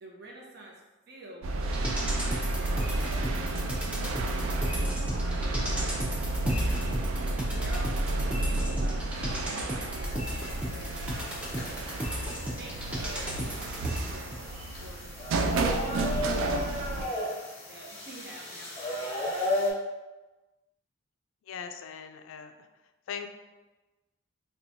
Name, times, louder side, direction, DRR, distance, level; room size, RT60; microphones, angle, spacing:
voice 1, 0.0-0.8 1.1-1.6 2.2-11.6 12.0-17.4 17.6-19.3, right 1 dB, 55° right, -2 dB, 0.7 m, -49 dB
sound 1, 1.4-17.1, right 2 dB, 80° right, 0.3 m, -31 dB
sound 2, 1.6-14.4 14.8-14.9, equal, 5° right, 0.5 m, -36 dB
sound 3, 10.1-19.7, left 1 dB, 25° left, 1.0 m, -35 dB
voice 2, 21.5-22.7 23.1-23.3, left 7 dB, 80° left, 7 dB, 0.3 m, -40 dB
4.3 x 2.3 x 2.6 m, 1.1 s
head